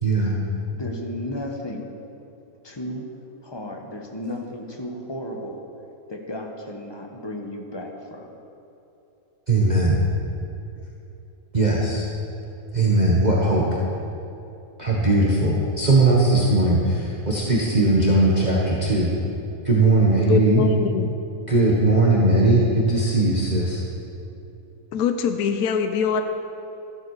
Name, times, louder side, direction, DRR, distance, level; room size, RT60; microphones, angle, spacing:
voice 1, 0.0-0.4 9.5-10.0 11.5-12.1 12.7-13.6 14.8-19.1 19.6-20.6 21.5-23.8, right 2 dB, 30° right, -5 dB, 1.4 m, -19 dB
voice 2, 0.7-1.9 2.6-3.1 3.4-5.6 6.1-8.3, left 1 dB, 20° left, 1 dB, 1.1 m, -34 dB
voice 3, 20.2-21.2 24.9-26.2, left 6 dB, 80° left, 7 dB, 1.1 m, -23 dB
13.5 x 12.0 x 4.8 m, 2.8 s
omnidirectional pair, 1.6 m